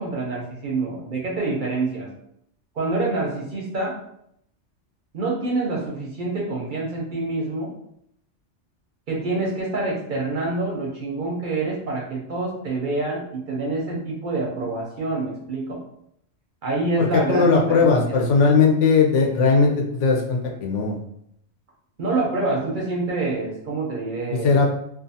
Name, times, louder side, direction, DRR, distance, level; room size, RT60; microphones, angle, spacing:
voice 1, 0.0-2.1 2.7-4.0 5.1-7.7 9.1-15.8 16.6-18.2 22.0-24.5, right 3 dB, 55° right, -3 dB, 0.6 m, -26 dB
voice 2, 17.0-21.0 24.3-24.7, left 4 dB, 80° left, 0 dB, 0.9 m, -18 dB
2.4 x 2.4 x 2.6 m, 0.73 s
omnidirectional pair, 1.2 m